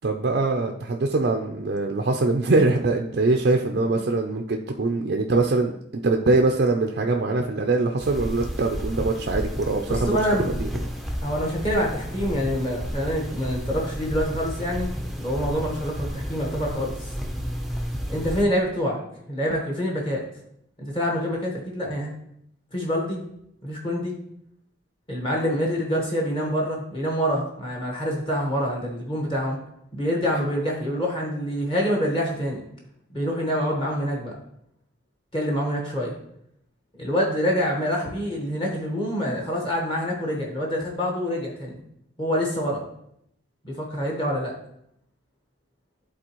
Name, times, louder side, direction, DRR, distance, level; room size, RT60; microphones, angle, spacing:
voice 1, 0.0-5.7 6.0-10.2 10.6-10.7, right 3 dB, 50° right, 3 dB, 0.4 m, -23 dB
sound 1, 8.0-18.4, equal, ahead, 0.6 m, -32 dB
voice 2, 9.9-10.6 11.2-17.1 18.1-19.0 19.3-20.2 20.8-22.1 22.7-23.2 23.6-24.1 25.1-29.6 29.9-32.6 33.1-34.3 35.3-36.1 37.0-41.8 42.2-42.9 43.6-44.5, equal, 25° left, -2 dB, 1.3 m, -26 dB
11.5 x 4.0 x 3.0 m, 0.74 s
head